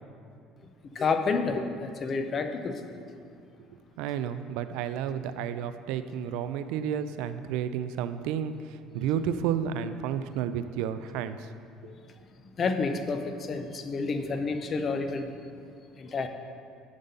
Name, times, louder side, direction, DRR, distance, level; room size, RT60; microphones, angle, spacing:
voice 1, 0.9-3.0 9.0-9.1 11.8-12.0 12.6-15.3 16.0-16.3, left 4 dB, 30° left, 7 dB, 0.5 m, -30 dB
voice 2, 4.0-11.5, right 8 dB, 80° right, 11 dB, 0.4 m, -31 dB
10.5 x 4.0 x 5.2 m, 2.4 s
cardioid pair, 150°, 0 cm